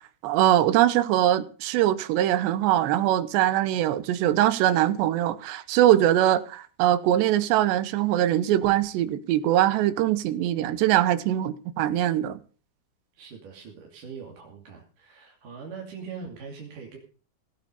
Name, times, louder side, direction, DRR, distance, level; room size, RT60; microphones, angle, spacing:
voice 1, 0.2-12.4, right 12 dB, 90° right, 3.1 m, -22 dB
voice 2, 13.2-17.0, right 5 dB, 55° right, 4.2 m, -41 dB
17.0 x 9.0 x 6.9 m
omnidirectional pair, 4.9 m